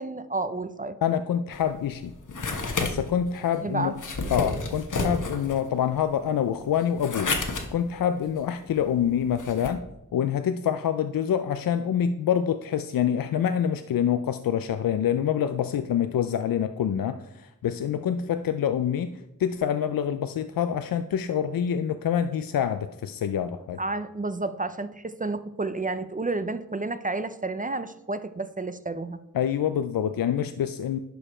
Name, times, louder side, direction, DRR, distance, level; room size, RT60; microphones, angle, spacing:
voice 1, 0.0-1.0 3.6-4.0 23.8-29.2, right 3 dB, 25° right, 12 dB, 0.5 m, -31 dB
voice 2, 1.0-2.1 2.8-3.9 4.3-9.8 10.1-19.1 19.4-23.8 29.3-31.0, left 9 dB, 85° left, 10 dB, 0.5 m, -26 dB
sound 1, 1.5-9.7, left 3 dB, 65° left, 1.3 m, -32 dB
11.5 x 4.9 x 4.3 m, 0.87 s
wide cardioid pair, 65°, 34 cm